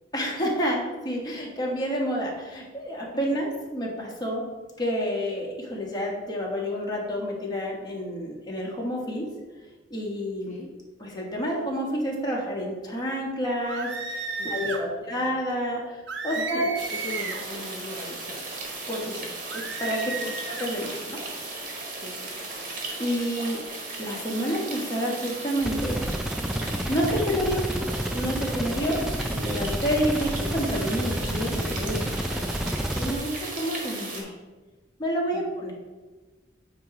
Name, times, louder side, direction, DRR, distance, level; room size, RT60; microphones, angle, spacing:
voice 1, 0.1-4.4 4.8-9.3 9.9-10.6 11.0-14.2 14.5-15.8 16.2-16.7 18.9-20.1 20.6-21.2 22.7-23.6 24.0-26.0 26.9-27.6 28.1-29.0 29.3-32.3 33.0-34.3 35.0-35.7, equal, 25° left, -2 dB, 1.4 m, -29 dB
sound 1, 13.6-14.8 16.1-17.5 19.5-20.7, right 4 dB, 70° right, 0.8 m, -33 dB
voice 2, 14.3-15.3 16.3-18.5 20.0-20.3 22.0-22.4 35.3-35.5, left 2 dB, 45° left, -3 dB, 0.8 m, -41 dB
sound 2, 16.7-34.2, right 2 dB, 50° right, 1.7 m, -36 dB
sound 3, 25.6-33.2, equal, 5° right, 0.4 m, -29 dB
9.1 x 3.0 x 4.9 m, 1.2 s
head